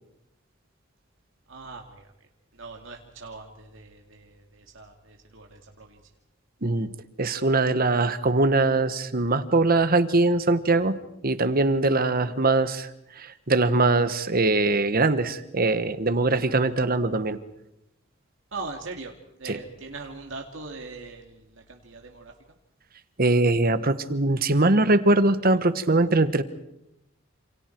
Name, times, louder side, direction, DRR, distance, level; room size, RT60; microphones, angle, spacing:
voice 1, 1.5-2.1 2.5-6.0 18.5-19.1 19.4-22.3, right 3 dB, 70° right, 2 dB, 2.3 m, -41 dB
voice 2, 7.2-10.9 11.2-17.4 19.4-19.6 23.2-26.4, right 2 dB, 50° right, 12 dB, 1.3 m, -22 dB
29.0 x 28.0 x 4.6 m, 0.85 s
head